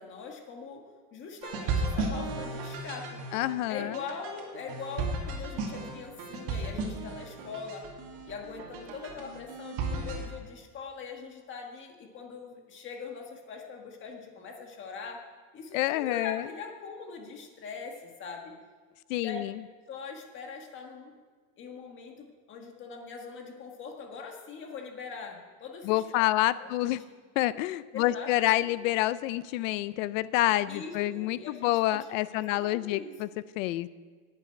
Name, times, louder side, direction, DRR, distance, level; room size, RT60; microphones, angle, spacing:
voice 1, 0.0-3.2 3.7-7.9 8.2-15.3 15.5-18.6 19.2-19.5 19.9-21.1 21.6-26.3 26.6-27.0 27.9-28.7 30.7-33.1, left 5 dB, 25° left, 2 dB, 1.6 m, -42 dB
sound 1, 1.4-10.3, right 3 dB, 45° right, 2.5 m, -35 dB
voice 2, 3.3-4.0 15.7-16.4 19.1-19.5 25.8-27.0 27.4-33.3 33.6-33.9, left 16 dB, 55° left, 16 dB, 0.6 m, -28 dB
11.0 x 8.3 x 9.6 m, 1.5 s
cardioid pair, 180°, 48 cm